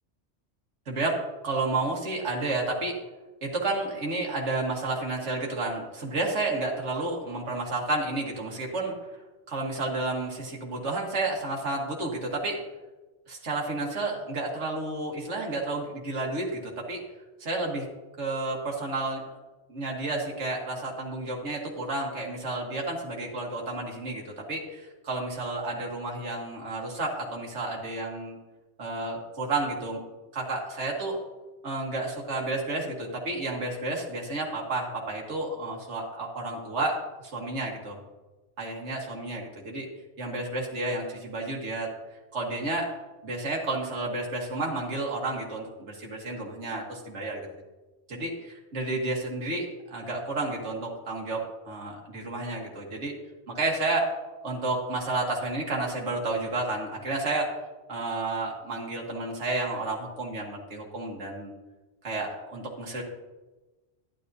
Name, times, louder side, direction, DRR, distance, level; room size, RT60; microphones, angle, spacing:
voice 1, 0.9-1.2 1.4-3.0 3.4-8.9 9.5-12.6 13.3-17.0 17.4-17.9 18.2-19.4 19.7-28.4 28.8-30.0 30.3-31.2 31.6-38.0 38.6-39.9 40.2-41.9 42.3-42.9 43.2-47.5 48.1-53.1 53.5-54.1 54.4-57.5 57.9-61.5 62.0-63.0, right 2 dB, 85° right, -1 dB, 1.8 m, -31 dB
11.5 x 10.0 x 2.7 m, 1.1 s
omnidirectional pair, 1.2 m